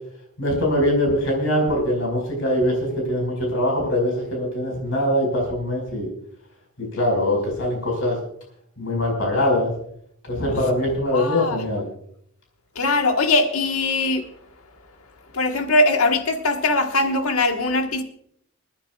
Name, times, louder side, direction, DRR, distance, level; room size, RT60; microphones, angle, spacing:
voice 1, 0.4-6.1 6.8-8.2 8.8-9.7 10.3-11.8, left 1 dB, 65° left, 0 dB, 5.0 m, -22 dB
voice 2, 11.1-11.6 12.7-14.3 15.3-18.0, left 2 dB, 85° left, 5 dB, 1.4 m, -21 dB
28.5 x 10.5 x 2.4 m, 0.69 s
head